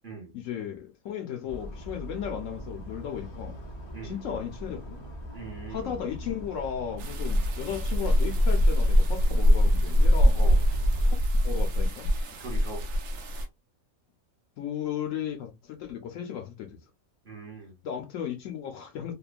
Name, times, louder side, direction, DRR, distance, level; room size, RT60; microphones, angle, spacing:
voice 1, 0.3-3.6 4.0-5.0 5.7-10.4 11.0-11.2 11.4-12.1 14.6-16.8 17.8-19.1, left 9 dB, 70° left, 0.9 m, -35 dB
sound 1, 1.5-11.1, right 1 dB, 45° left, 0.3 m, -40 dB
voice 2, 5.3-6.0 10.3-10.6 12.4-12.8 17.2-17.8, right 3 dB, 40° right, 0.9 m, -41 dB
sound 2, 7.0-13.5, equal, 70° right, 1.0 m, -23 dB
2.9 x 2.1 x 2.4 m
omnidirectional pair, 1.5 m